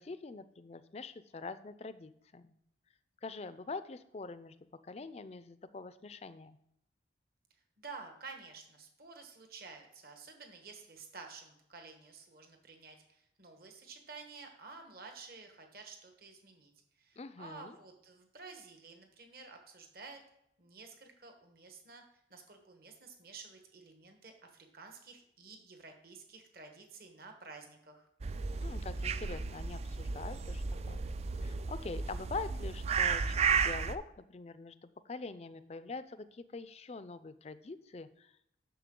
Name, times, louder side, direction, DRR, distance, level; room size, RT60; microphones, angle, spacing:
voice 1, 0.0-2.6 3.2-4.6 4.9-6.6 17.2-17.8 28.6-31.0 31.4-34.8 35.1-38.5, left 3 dB, 35° left, 14 dB, 0.4 m, -44 dB
voice 2, 7.8-16.7 17.0-20.2 20.6-22.0 22.3-28.1, right 4 dB, 55° right, 4 dB, 1.3 m, -51 dB
sound 1, 28.2-34.0, right 5 dB, 35° right, 0.3 m, -33 dB
10.0 x 6.8 x 3.8 m, 0.78 s
head